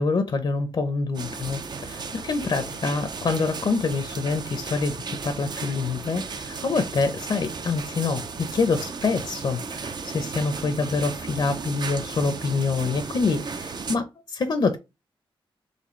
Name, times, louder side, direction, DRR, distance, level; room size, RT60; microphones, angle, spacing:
voice 1, 0.0-14.8, left 4 dB, 55° left, 0.7 m, -26 dB
sound 1, 1.1-14.0, right 4 dB, 50° right, 0.5 m, -35 dB
4.2 x 3.2 x 3.1 m
wide cardioid pair, 115°, 10 cm